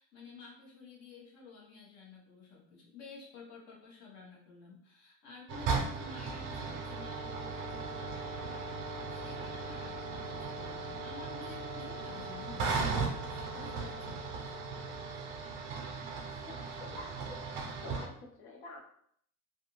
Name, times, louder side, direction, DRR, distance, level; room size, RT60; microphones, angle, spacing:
voice 1, 0.0-14.3, left 4 dB, 45° left, -3 dB, 1.0 m, -51 dB
sound 1, 5.5-18.1, right 4 dB, 40° right, 0.4 m, -38 dB
Wind instrument woodwind instrument, 6.6-15.9, right 1 dB, 10° left, 1.1 m, -46 dB
voice 2, 16.4-17.5 17.8-18.8, left 2 dB, 80° left, 1 dB, 0.8 m, -48 dB
2.5 x 2.3 x 3.0 m, 0.66 s
cardioid pair, 165°, 33 cm